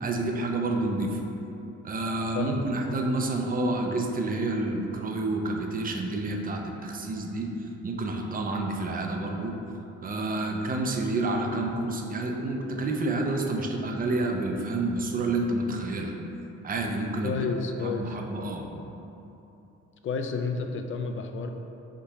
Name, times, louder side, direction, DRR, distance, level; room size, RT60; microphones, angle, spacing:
voice 1, 0.0-1.2 1.8-9.6 10.0-16.1 16.6-17.4 17.8-18.7, right 2 dB, 30° right, 2 dB, 0.5 m, -29 dB
voice 2, 2.3-3.0 17.2-18.2 20.0-21.5, left 4 dB, 45° left, 5 dB, 0.4 m, -31 dB
3.7 x 2.7 x 4.6 m, 2.9 s
cardioid pair, 90°, 30 cm